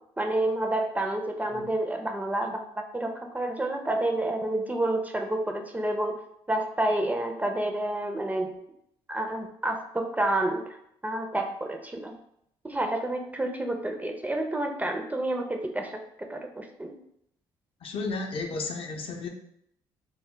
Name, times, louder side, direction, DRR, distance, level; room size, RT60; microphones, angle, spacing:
voice 1, 0.2-6.2 6.5-8.6 9.1-10.8 11.0-12.1 12.6-16.9, right 1 dB, 15° right, 3 dB, 0.4 m, -29 dB
voice 2, 17.8-19.3, left 3 dB, 55° left, 3 dB, 0.5 m, -33 dB
2.2 x 2.0 x 3.7 m, 0.73 s
hypercardioid pair, 60°, 12 cm